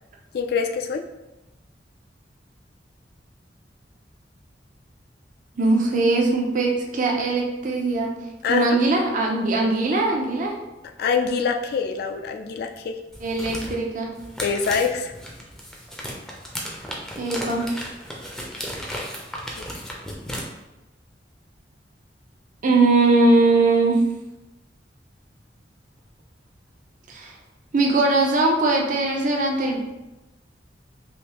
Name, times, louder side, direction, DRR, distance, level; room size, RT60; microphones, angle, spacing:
voice 1, 0.3-1.0 8.4-8.8 11.0-13.0 14.4-15.1 19.6-19.7, left 5 dB, 60° left, 6 dB, 0.3 m, -24 dB
voice 2, 5.6-8.1 8.5-10.5 13.2-14.1 17.2-17.7 22.6-24.0 27.1-27.3 27.7-29.8, right 2 dB, 45° right, 0 dB, 0.5 m, -20 dB
sound 1, 13.1-20.4, equal, 5° left, 0.5 m, -35 dB
3.4 x 2.6 x 2.9 m, 1.0 s
head